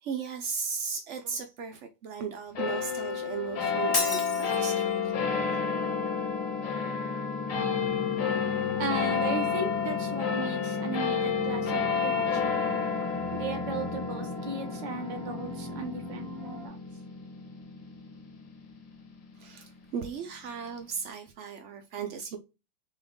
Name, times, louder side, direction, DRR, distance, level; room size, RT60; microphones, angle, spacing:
voice 1, 0.0-5.1 19.4-22.4, right 6 dB, 90° right, 0.6 m, -36 dB
sound 1, 2.6-19.3, left 6 dB, 75° left, 1.9 m, -30 dB
Shatter, 3.9-4.9, left 3 dB, 35° left, 0.9 m, -31 dB
sound 2, 7.5-16.7, right 2 dB, 10° left, 1.0 m, -41 dB
voice 2, 8.8-12.6 13.3-16.8, right 3 dB, 35° right, 0.7 m, -36 dB
6.0 x 2.4 x 3.6 m
omnidirectional pair, 2.0 m